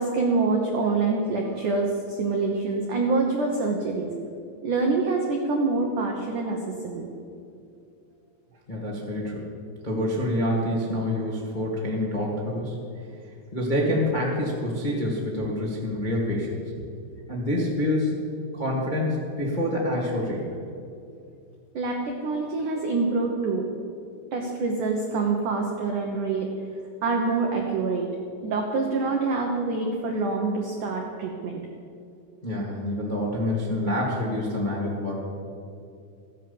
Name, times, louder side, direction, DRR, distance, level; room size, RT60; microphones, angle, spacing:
voice 1, 0.0-4.1 4.6-7.1 21.7-23.7 24.3-26.5 27.0-28.1 28.4-31.6, right 3 dB, 80° right, 1 dB, 1.8 m, -26 dB
voice 2, 8.7-9.5 9.8-12.7 13.5-16.6 17.3-18.1 18.5-20.6 32.4-35.2, left 1 dB, 65° left, -4 dB, 0.4 m, -27 dB
15.0 x 11.0 x 7.1 m, 2.5 s
omnidirectional pair, 5.5 m